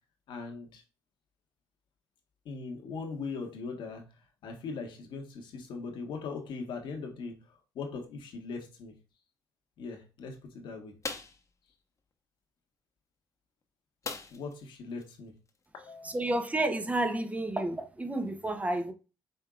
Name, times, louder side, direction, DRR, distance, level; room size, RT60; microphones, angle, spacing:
voice 1, 0.3-0.8 2.4-4.1 4.4-8.9 9.8-11.0 14.0-15.3 15.7-16.3, left 4 dB, 70° left, 1.4 m, -40 dB
sound 1, 11.0-11.4 14.0-14.6 15.0-15.1 15.5-15.7, left 4 dB, 40° left, 1.1 m, -38 dB
voice 2, 16.0-18.9, right 1 dB, 15° right, 1.0 m, -30 dB
5.3 x 3.5 x 2.4 m
supercardioid pair, 60°, 8 cm